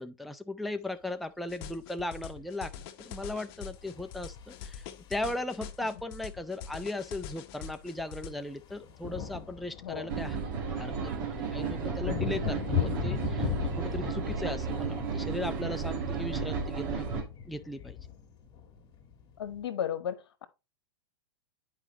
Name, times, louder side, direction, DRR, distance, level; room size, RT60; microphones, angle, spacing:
voice 1, 0.0-10.4 10.8-18.0, left 2 dB, ahead, 0.4 m, -37 dB
sound 1, 1.5-8.3, left 8 dB, 50° left, 0.9 m, -44 dB
sound 2, 3.8-5.4 6.7-6.8 7.0-7.2 7.5-19.6, left 7 dB, 30° left, 1.6 m, -38 dB
sound 3, 10.1-17.2, right 5 dB, 55° right, 2.1 m, -33 dB
voice 2, 19.4-20.5, left 9 dB, 80° left, 0.9 m, -34 dB
8.9 x 4.8 x 2.9 m
hypercardioid pair, 120°, 13 cm